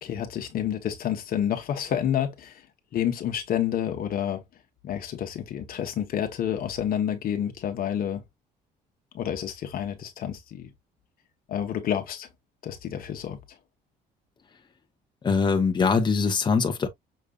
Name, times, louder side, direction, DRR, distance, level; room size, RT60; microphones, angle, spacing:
voice 1, 0.0-2.6 2.9-4.4 4.8-8.2 9.1-10.7 11.5-12.3 12.6-13.4, left 10 dB, 60° left, 1.3 m, -29 dB
voice 2, 15.2-16.9, left 5 dB, 25° left, 1.2 m, -22 dB
6.7 x 3.2 x 2.4 m
cardioid pair, 110°, 17 cm